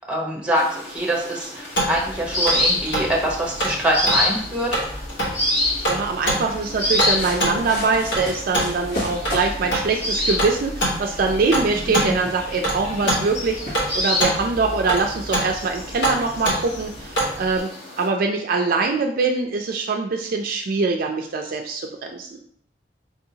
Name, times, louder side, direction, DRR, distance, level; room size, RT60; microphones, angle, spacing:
voice 1, 0.1-4.8 11.9-12.1, right 1 dB, 5° right, -1 dB, 0.9 m, -24 dB
sound 1, 0.5-18.1, left 1 dB, 35° left, 1.1 m, -29 dB
sound 2, 1.8-17.6, right 1 dB, 75° left, 1.2 m, -27 dB
voice 2, 5.8-17.7 18.0-22.4, right 4 dB, 55° right, 3 dB, 0.4 m, -23 dB
sound 3, 6.8-14.3, left 1 dB, 60° left, 1.2 m, -36 dB
4.7 x 2.7 x 2.7 m, 0.62 s
head